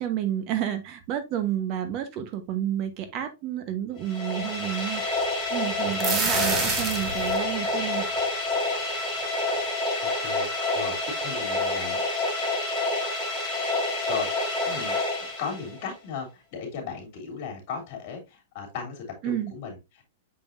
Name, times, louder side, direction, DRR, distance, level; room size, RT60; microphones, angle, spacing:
voice 1, 0.0-5.2 5.5-8.1 19.2-19.5, right 11 dB, 35° right, 9 dB, 1.0 m, -30 dB
sound 1, 4.0-15.9, left 2 dB, 10° left, 2.8 m, -28 dB
sound 2, 5.7-7.4, right 4 dB, 20° right, 1.5 m, -27 dB
voice 2, 10.0-10.5 10.7-12.0 14.1-14.3 14.6-15.0 15.4-20.0, left 5 dB, 45° left, 2 dB, 3.2 m, -36 dB
6.8 x 5.4 x 2.6 m, 0.23 s
supercardioid pair, 155°, 0 cm